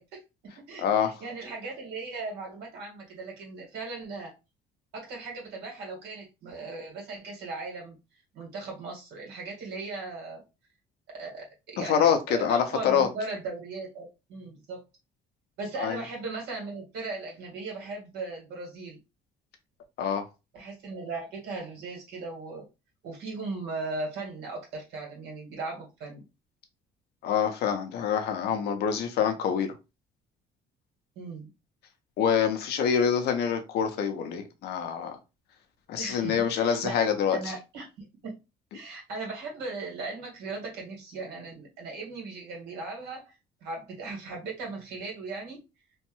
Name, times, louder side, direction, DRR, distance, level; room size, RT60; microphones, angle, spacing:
voice 1, 0.0-4.3 4.9-8.0 8.3-10.4 11.1-11.4 11.7-14.8 15.6-19.0 20.5-22.7 23.0-26.2 31.1-31.5 36.0-37.1 37.3-38.4 38.7-43.3 43.6-45.6, right 3 dB, 90° right, 1.6 m, -38 dB
voice 2, 0.8-1.1 11.8-13.1 15.8-16.0 20.0-20.2 27.2-29.7 32.2-35.2 35.9-37.4, left 7 dB, 75° left, 0.7 m, -26 dB
3.1 x 2.2 x 3.0 m
cardioid pair, 110°, 17 cm